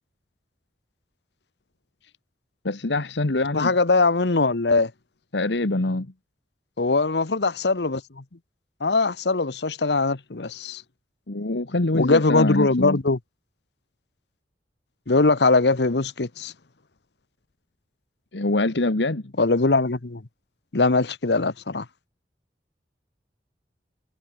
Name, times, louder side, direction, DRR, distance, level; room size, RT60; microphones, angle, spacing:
voice 1, 2.6-3.7 5.3-6.1 11.3-13.0 18.3-19.2, left 2 dB, 90° left, 1.5 m, -24 dB
voice 2, 3.5-4.9 6.8-8.2 8.8-10.8 11.9-13.2 15.1-16.5 19.4-20.2 20.7-21.9, left 3 dB, 75° left, 1.1 m, -21 dB
head